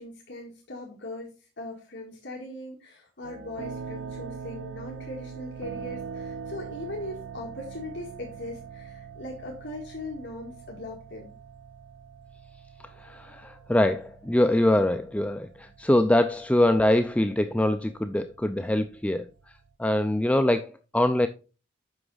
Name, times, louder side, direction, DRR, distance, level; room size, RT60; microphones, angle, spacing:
voice 1, 0.0-11.3, left 2 dB, 60° left, 1.9 m, -40 dB
sound 1, 3.2-19.7, right 6 dB, 70° right, 0.6 m, -43 dB
voice 2, 13.0-19.3 19.8-21.3, left 1 dB, 5° left, 0.4 m, -23 dB
8.1 x 5.9 x 3.9 m
head